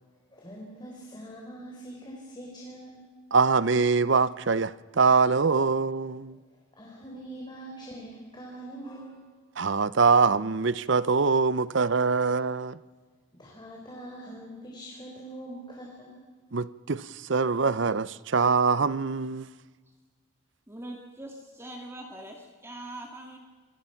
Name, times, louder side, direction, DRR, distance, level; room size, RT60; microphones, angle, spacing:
voice 1, 0.3-3.0 6.8-9.3 12.2-12.3 13.4-16.2, right 1 dB, 20° left, 4.2 m, -43 dB
voice 2, 3.3-6.4 9.6-12.8 16.5-19.5, right 4 dB, 60° right, 0.7 m, -24 dB
voice 3, 20.7-23.4, right 1 dB, 10° right, 2.3 m, -42 dB
27.0 x 22.0 x 5.9 m
head